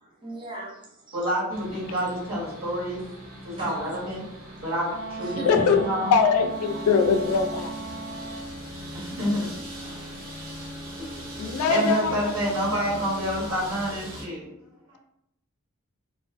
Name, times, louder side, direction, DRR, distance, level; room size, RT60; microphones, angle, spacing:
voice 1, 0.0-0.8 1.1-1.2 3.6-3.9 5.2-5.5 9.8-10.1, right 2 dB, 25° right, -4 dB, 0.5 m, -38 dB
voice 2, 1.1-3.0 3.4-4.2 4.6-6.1 8.9-9.5 11.0-11.2 11.7-14.5 14.9-15.0, equal, 65° right, -5 dB, 1.1 m, -28 dB
sound 1, 1.5-14.3, equal, 40° right, 0.8 m, -41 dB
Wind instrument woodwind instrument, 4.8-8.5, right 4 dB, 80° right, 0.6 m, -37 dB
voice 3, 5.5-5.8 6.1-7.7 11.4-12.3, left 5 dB, 80° left, 10 dB, 0.3 m, -22 dB
sound 2, 6.4-13.6, equal, 25° left, 0.7 m, -42 dB
2.4 x 2.3 x 2.4 m, 0.81 s
head